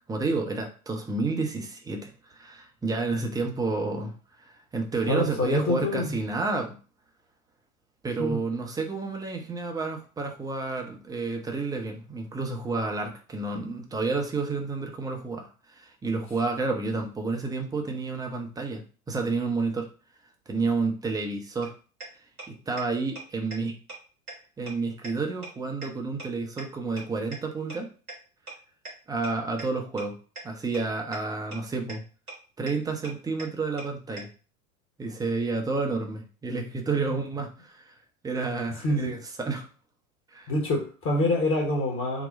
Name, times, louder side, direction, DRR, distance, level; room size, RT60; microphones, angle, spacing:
voice 1, 0.1-4.1 4.5-6.8 8.0-19.9 20.5-21.7 22.5-23.7 24.6-27.9 29.1-30.2 30.4-32.0 32.6-34.3 35.0-37.9 38.2-39.7 40.3-40.5, right 3 dB, 10° right, 3 dB, 0.6 m, -30 dB
voice 2, 5.1-6.2 8.2-8.4 37.1-37.2 38.8-39.1 40.5-42.3, left 2 dB, 30° left, 0 dB, 1.1 m, -26 dB
sound 1, 21.6-21.7 22.0-22.1 22.4-22.5 22.8-22.9 23.2-23.3 23.5-23.6 23.9-24.0 24.3-24.4 24.7-24.8 25.0-25.1 25.4-25.5 25.8-25.9 26.2-26.3 26.6-26.7 27.0-27.1 27.3-27.4 27.7-27.8 28.1-28.2 28.5-28.6 28.8-28.9 29.2-29.3 29.6-29.7 30.0-30.1 30.4-30.5 30.7-30.8 31.1-31.2 31.5-31.6 31.9-32.0 32.3-32.4 32.7-32.8 33.0-33.1 33.4-33.5 33.8-33.9 34.2-34.3, right 2 dB, 85° right, 1.3 m, -38 dB
4.0 x 2.2 x 3.9 m, 0.37 s
figure-of-eight pair, 85°, 42 cm